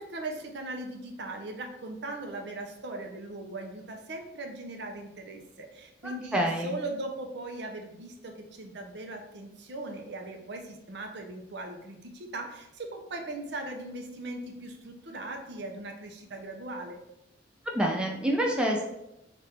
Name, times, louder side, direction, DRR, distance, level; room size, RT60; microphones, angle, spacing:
voice 1, 0.0-17.0, right 2 dB, 60° right, 3 dB, 0.6 m, -39 dB
voice 2, 6.0-6.7 17.7-18.8, right 1 dB, 5° right, 0 dB, 0.4 m, -27 dB
3.4 x 2.5 x 4.3 m, 0.86 s
head